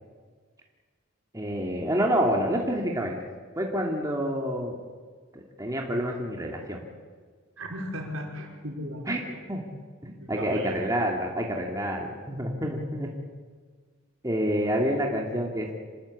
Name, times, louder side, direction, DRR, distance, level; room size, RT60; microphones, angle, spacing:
voice 1, 1.3-3.1 3.6-4.8 5.3-6.8 9.1-9.2 9.5-9.6 10.0-13.1 14.2-15.7, equal, 15° right, 0 dB, 2.5 m, -28 dB
voice 2, 7.6-9.4 10.2-10.8, equal, 70° right, 1 dB, 5.2 m, -36 dB
26.5 x 20.0 x 8.6 m, 1.6 s
head